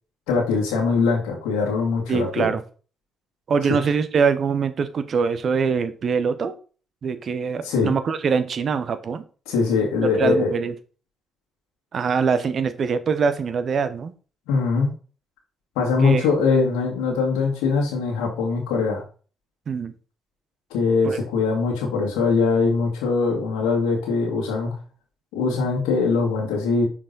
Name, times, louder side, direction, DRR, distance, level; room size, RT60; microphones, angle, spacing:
voice 1, 0.3-2.5 7.6-7.9 9.5-10.5 14.5-14.9 15.8-19.0 20.7-24.7 25.3-26.8, left 4 dB, 80° left, -2 dB, 1.9 m, -22 dB
voice 2, 2.1-2.6 3.5-6.5 7.0-9.2 10.0-10.7 11.9-14.1 16.0-16.2 19.7-19.9 21.0-21.2, right 5 dB, 55° right, 11 dB, 0.8 m, -23 dB
5.8 x 4.6 x 3.9 m, 0.38 s
hypercardioid pair, 50°, 0 cm